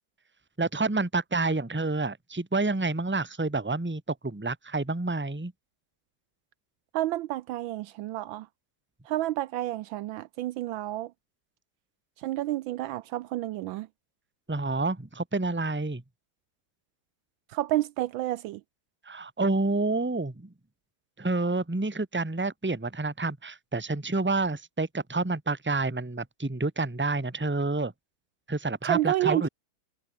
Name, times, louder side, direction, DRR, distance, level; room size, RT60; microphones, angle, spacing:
voice 1, 0.6-5.5 14.5-16.0 19.0-20.5 21.2-27.9 28.5-29.5, right 3 dB, 5° right, 1.3 m, -28 dB
voice 2, 6.9-8.5 9.1-11.1 12.2-13.9 17.5-18.6 28.8-29.5, right 15 dB, 75° right, 1.3 m, -30 dB
omnidirectional pair, 2.2 m